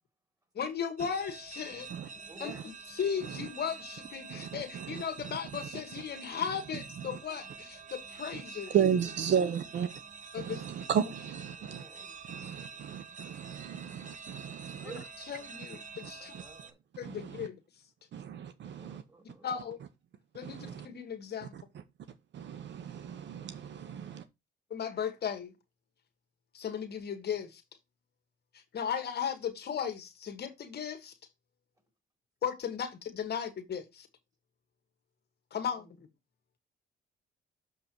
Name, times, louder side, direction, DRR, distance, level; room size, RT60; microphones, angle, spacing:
voice 1, 0.5-1.9 2.4-2.5 3.0-8.7 10.3-10.9 14.9-15.0 15.3-16.3 17.0-17.6 19.4-19.8 20.3-21.5 24.7-25.5 26.5-27.6 28.5-31.1 32.4-34.1 35.5-36.1, left 7 dB, 55° left, 1.5 m, -36 dB
sound 1, 1.0-16.7, right 5 dB, 40° right, 1.1 m, -47 dB
voice 2, 2.3-2.7 8.7-8.8 11.6-12.1 12.4-12.9 14.8-15.1 16.1-16.8 18.7-19.7 35.7-36.0, right 3 dB, 15° right, 3.6 m, -52 dB
voice 3, 4.3-5.8 7.0-7.2 8.3-8.4 8.7-9.9 10.4-11.8 12.3-14.9 16.0-16.4 17.0-17.5 18.1-19.0 20.4-20.9 21.4-21.6 22.3-24.2, right 8 dB, 65° right, 0.8 m, -34 dB
6.8 x 5.5 x 4.5 m
cardioid pair, 90°, 20 cm